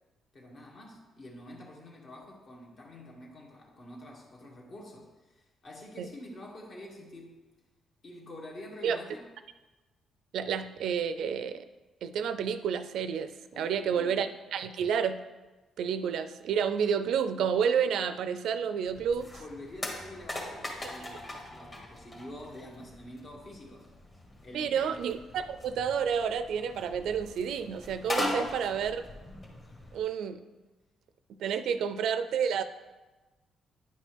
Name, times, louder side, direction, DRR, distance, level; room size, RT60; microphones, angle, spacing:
voice 1, 0.3-7.4 8.0-9.2 13.5-14.2 19.4-23.9 24.4-25.0 31.7-31.8, left 1 dB, 50° left, -2 dB, 1.9 m, -47 dB
voice 2, 10.3-11.6 12.0-13.3 13.6-15.2 15.8-19.3 24.5-29.0 29.9-30.4 31.4-32.6, right 7 dB, 75° right, 11 dB, 0.4 m, -30 dB
sound 1, 18.9-30.0, left 1 dB, 30° left, 1.8 m, -40 dB
9.7 x 5.4 x 3.4 m, 1.2 s
cardioid pair, 90°, 0 cm